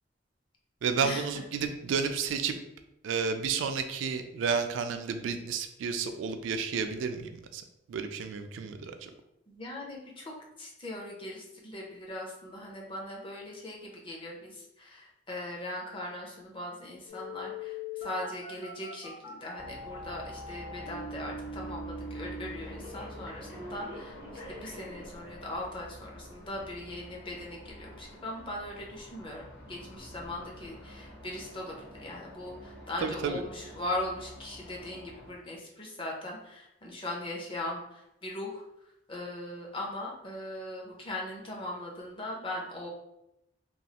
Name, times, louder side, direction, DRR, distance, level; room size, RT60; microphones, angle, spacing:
voice 1, 0.8-2.5 3.0-7.6 7.9-9.1 33.0-33.4, right 6 dB, 75° right, 7 dB, 0.3 m, -31 dB
voice 2, 9.5-10.3 10.6-24.2 24.5-38.6 39.1-42.9, left 1 dB, 25° left, -2 dB, 0.6 m, -39 dB
Telephone, 17.1-25.1 25.6-25.7, left 1 dB, 85° left, 0.8 m, -42 dB
sound 1, 19.5-35.3, equal, 60° left, 0.9 m, -48 dB
3.1 x 2.3 x 2.8 m, 0.86 s
head